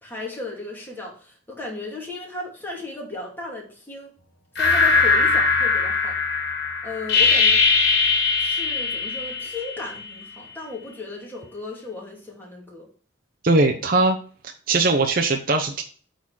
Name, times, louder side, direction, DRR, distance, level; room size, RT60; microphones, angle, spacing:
voice 1, 0.0-4.1 4.6-6.2 6.8-7.6 8.4-12.9, left 3 dB, 10° left, -2 dB, 2.5 m, -35 dB
sound 1, 4.6-10.0, left 4 dB, 55° left, 2.5 m, -20 dB
voice 2, 13.4-14.2 14.7-15.8, right 2 dB, 45° right, 3 dB, 0.9 m, -20 dB
8.6 x 4.0 x 6.4 m, 0.42 s
head